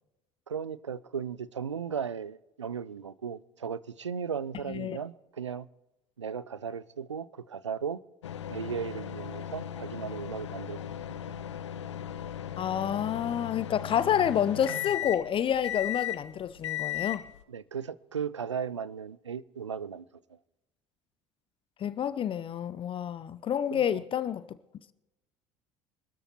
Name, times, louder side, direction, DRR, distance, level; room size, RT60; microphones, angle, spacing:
voice 1, 0.5-5.7 6.2-8.0 8.5-10.9 17.5-20.0 23.7-24.0, right 7 dB, 85° right, 0.4 m, -36 dB
sound 1, 8.2-17.4, left 11 dB, 80° left, 0.5 m, -37 dB
voice 2, 12.6-17.3 21.8-24.4, left 9 dB, 35° left, 0.6 m, -29 dB
25.5 x 13.0 x 3.0 m
figure-of-eight pair, 60°, 15 cm